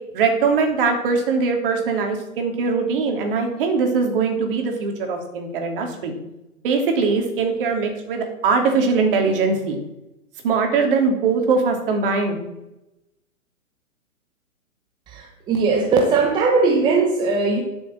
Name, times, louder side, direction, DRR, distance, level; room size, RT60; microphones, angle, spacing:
voice 1, 0.1-6.1 6.6-9.8 10.4-12.4, right 4 dB, 40° right, 3 dB, 3.0 m, -21 dB
voice 2, 15.1-17.6, right 4 dB, 10° right, 1 dB, 0.9 m, -19 dB
11.0 x 7.2 x 7.6 m, 0.93 s
hypercardioid pair, 145°, 42 cm